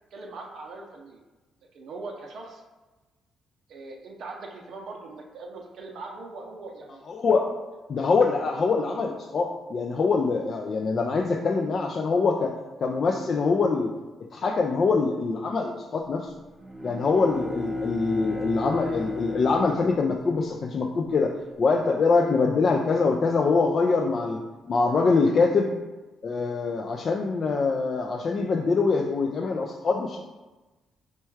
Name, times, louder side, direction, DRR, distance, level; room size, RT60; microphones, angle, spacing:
voice 1, 0.1-1.2 1.7-2.6 3.7-7.0, right 3 dB, 65° right, 0 dB, 0.5 m, -40 dB
voice 2, 7.1-7.5 7.9-13.9 14.3-16.3 16.8-21.3 21.6-24.4 24.7-25.7 26.2-30.2, left 4 dB, 50° left, 1 dB, 0.3 m, -24 dB
Bowed string instrument, 16.5-21.1, left 2 dB, 5° right, 0.8 m, -34 dB
4.3 x 2.2 x 4.6 m, 1.2 s
cardioid pair, 90°, 0 cm